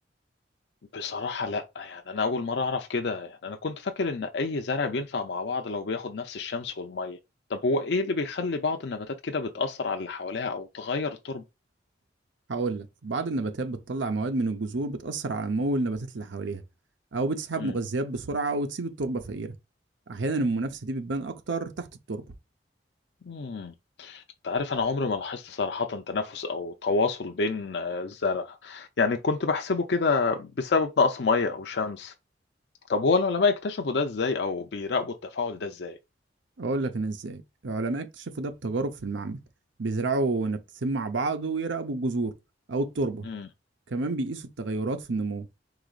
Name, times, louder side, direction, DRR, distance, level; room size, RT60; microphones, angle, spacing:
voice 1, 0.9-7.2 7.5-11.4 17.6-17.8 23.3-32.1 32.9-36.0 43.2-43.5, left 4 dB, 65° left, 0.5 m, -28 dB
voice 2, 12.5-16.6 17.1-19.5 20.1-22.2 36.6-39.4 39.8-42.3 42.7-43.3 43.9-45.5, right 3 dB, 85° right, 0.7 m, -29 dB
4.9 x 3.9 x 2.4 m
head